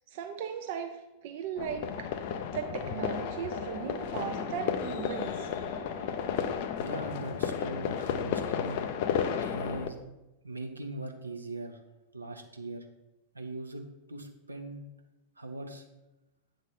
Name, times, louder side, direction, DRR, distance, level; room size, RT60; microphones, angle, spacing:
voice 1, 0.1-1.0 1.2-2.1 2.5-5.5, right 7 dB, 50° right, 5 dB, 0.5 m, -37 dB
sound 1, 1.6-9.9, left 8 dB, 50° left, 0.5 m, -33 dB
sound 2, 2.5-6.5, right 8 dB, 10° right, 0.7 m, -47 dB
voice 2, 6.8-8.9 9.4-10.1 10.4-11.8 12.1-12.9 13.3-14.9 15.4-15.8, right 2 dB, 80° right, 4 dB, 0.7 m, -40 dB
8.0 x 3.8 x 5.7 m, 1.0 s
figure-of-eight pair, 90°, 0 cm